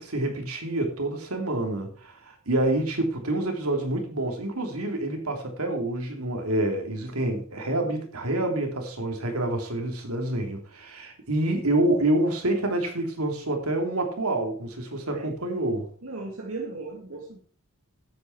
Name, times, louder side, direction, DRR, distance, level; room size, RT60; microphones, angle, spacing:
voice 1, 0.0-15.9, right 1 dB, 90° right, 4 dB, 3.2 m, -27 dB
voice 2, 16.0-17.4, right 3 dB, 70° right, 0 dB, 2.1 m, -36 dB
12.0 x 8.7 x 4.7 m, 0.43 s
head